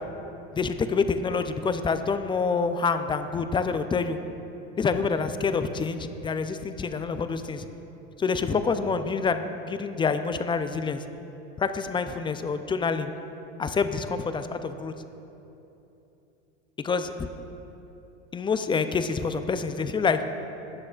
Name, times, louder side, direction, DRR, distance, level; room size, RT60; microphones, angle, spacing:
voice 1, 0.5-4.2 4.8-7.6 8.2-11.0 11.6-13.1 13.6-14.9 16.8-17.3 18.3-20.2, left 5 dB, 15° left, 9 dB, 0.3 m, -27 dB
17.0 x 6.4 x 2.4 m, 2.9 s
hypercardioid pair, 90°, 35 cm